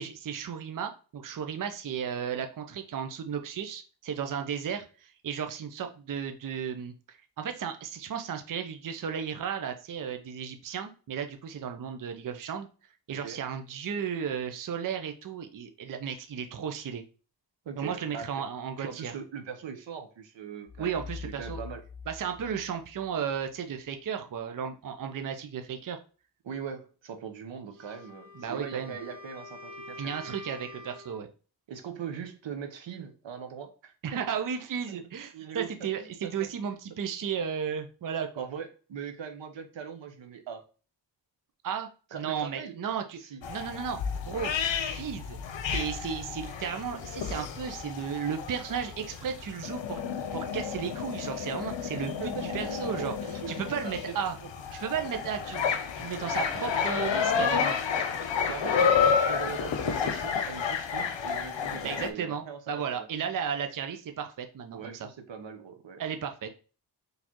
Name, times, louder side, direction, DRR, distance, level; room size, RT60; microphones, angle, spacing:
voice 1, 0.0-12.7 13.1-17.0 17.8-19.1 20.8-21.6 22.1-26.0 28.4-29.0 30.0-31.3 34.0-38.4 41.6-41.9 42.2-43.2 43.5-44.0 44.3-44.5 44.8-45.4 45.7-50.0 50.3-53.1 53.5-54.3 54.7-57.8 61.8-65.1 66.0-66.5, right 7 dB, 50° right, 6 dB, 0.5 m, -34 dB
voice 2, 13.1-13.4 17.6-18.3 18.8-21.0 21.2-21.8 26.4-30.1 31.7-34.2 34.9-35.0 35.3-36.7 38.4-40.6 42.1-42.7 43.2-43.5 51.9-54.5 58.5-63.1 64.7-66.0, right 7 dB, 85° right, 5 dB, 0.9 m, -41 dB
sound 1, 20.7-23.5, left 5 dB, 20° left, 1.5 m, -44 dB
Wind instrument woodwind instrument, 27.7-31.3, left 2 dB, 30° right, 1.6 m, -46 dB
sound 2, 43.4-62.1, left 6 dB, 85° left, 0.7 m, -30 dB
4.2 x 3.3 x 2.9 m, 0.36 s
wide cardioid pair, 120°, 43 cm